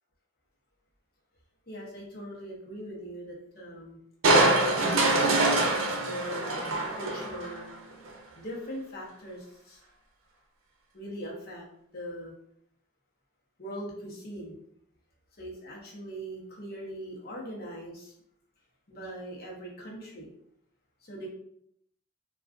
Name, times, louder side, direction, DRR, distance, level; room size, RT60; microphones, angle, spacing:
voice 1, 1.7-4.0 4.6-7.7 8.3-9.8 10.9-11.6 11.9-12.4 13.6-14.6 15.4-18.1 18.9-20.3 21.0-21.3, equal, 50° left, -3 dB, 0.9 m, -41 dB
Crushing, 4.2-7.6 8.1-8.2, right 2 dB, 85° right, 0.6 m, -24 dB
3.7 x 2.4 x 2.4 m, 0.74 s
head